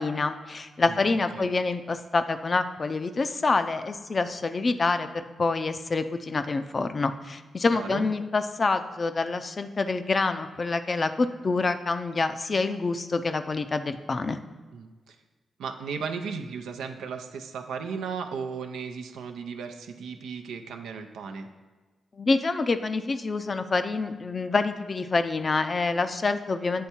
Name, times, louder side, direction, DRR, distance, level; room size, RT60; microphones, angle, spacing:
voice 1, 0.0-5.1 5.4-14.4 22.2-26.9, left 3 dB, 45° left, 9 dB, 0.5 m, -27 dB
voice 2, 7.7-8.1 14.7-15.2 15.6-21.5, right 5 dB, 80° right, 6 dB, 0.5 m, -35 dB
8.4 x 3.5 x 4.3 m, 1.3 s
supercardioid pair, 45°, 0 cm